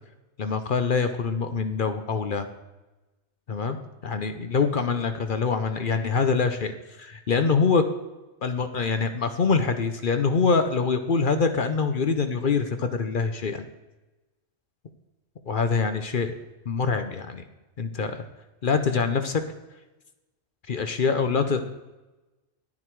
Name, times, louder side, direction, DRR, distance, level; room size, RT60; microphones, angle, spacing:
voice 1, 0.4-2.5 3.5-3.8 4.0-7.9 8.4-13.6 15.5-16.3 16.7-17.4 17.8-18.2 18.6-19.4 20.7-21.7, left 5 dB, 50° left, 8 dB, 0.8 m, -24 dB
9.7 x 9.5 x 4.6 m, 1.1 s
omnidirectional pair, 1.3 m